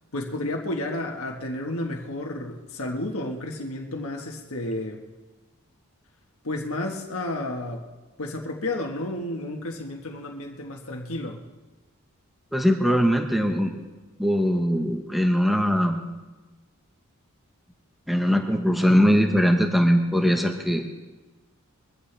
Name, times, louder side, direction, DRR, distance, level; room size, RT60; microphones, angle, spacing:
voice 1, 0.1-5.0 6.4-7.9 8.2-11.4, left 1 dB, 75° left, 1 dB, 1.5 m, -31 dB
voice 2, 12.5-13.7 14.2-16.0 18.1-20.8, equal, ahead, 3 dB, 1.1 m, -21 dB
23.0 x 14.5 x 3.4 m, 1.2 s
head